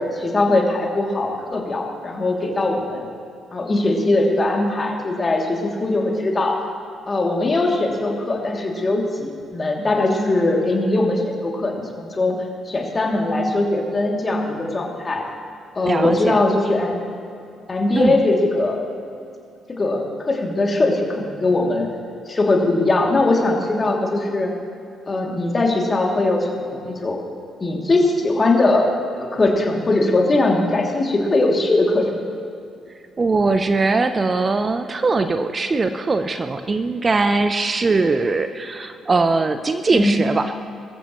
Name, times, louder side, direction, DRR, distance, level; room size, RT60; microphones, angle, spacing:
voice 1, 0.0-3.1 3.5-6.6 7.1-12.4 12.6-15.2 15.8-17.0 17.7-18.8 19.7-21.9 22.3-24.5 25.1-27.2 27.6-28.9 29.2-32.1 39.9-40.2, left 2 dB, 30° left, 0 dB, 2.7 m, -20 dB
voice 2, 15.8-16.4 18.0-18.2 33.2-40.5, right 3 dB, 35° right, 9 dB, 0.7 m, -20 dB
22.0 x 14.0 x 3.1 m, 2.5 s
figure-of-eight pair, 40°, 0 cm